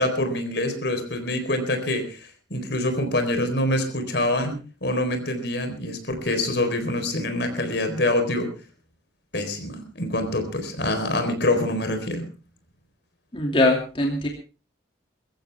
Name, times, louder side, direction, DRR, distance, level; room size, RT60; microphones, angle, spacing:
voice 1, 0.0-8.5 9.3-12.3, left 1 dB, 65° left, 7 dB, 4.2 m, -25 dB
voice 2, 13.3-14.3, left 2 dB, 30° left, 1 dB, 2.6 m, -21 dB
23.5 x 14.5 x 3.5 m, 0.34 s
head